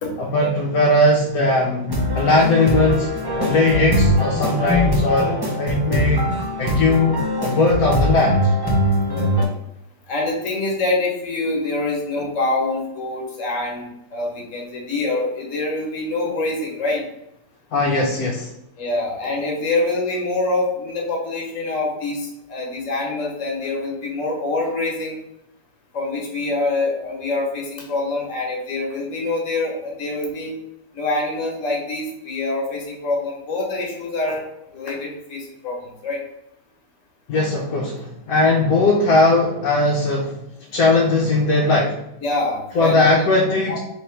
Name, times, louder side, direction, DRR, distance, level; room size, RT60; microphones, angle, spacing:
voice 1, 0.2-1.9 2.1-3.1 3.4-6.3 6.6-8.5 17.7-18.5 37.3-40.4 40.7-42.0 42.7-43.8, left 2 dB, 65° left, -2 dB, 1.1 m, -19 dB
sound 1, 1.9-9.4, left 1 dB, 25° right, 0.6 m, -21 dB
voice 2, 10.1-17.0 18.8-25.2 25.9-30.5 30.9-34.4 34.7-36.2 42.2-43.1 43.7-43.8, left 2 dB, 50° left, 0 dB, 1.4 m, -25 dB
3.8 x 3.1 x 4.4 m, 0.84 s
omnidirectional pair, 1.8 m